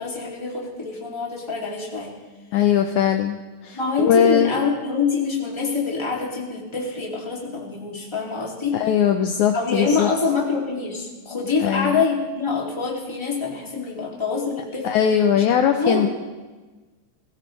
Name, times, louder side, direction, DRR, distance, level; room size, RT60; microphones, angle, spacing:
voice 1, 0.0-2.1 3.7-8.8 9.5-14.9 15.3-15.4 15.8-16.1, left 4 dB, 10° left, -3 dB, 2.2 m, -25 dB
voice 2, 2.5-3.4 3.6-4.5 8.7-10.1 11.6-12.0 14.8-16.1, left 9 dB, 75° left, 6 dB, 1.9 m, -20 dB
22.5 x 15.5 x 3.3 m, 1.3 s
omnidirectional pair, 3.8 m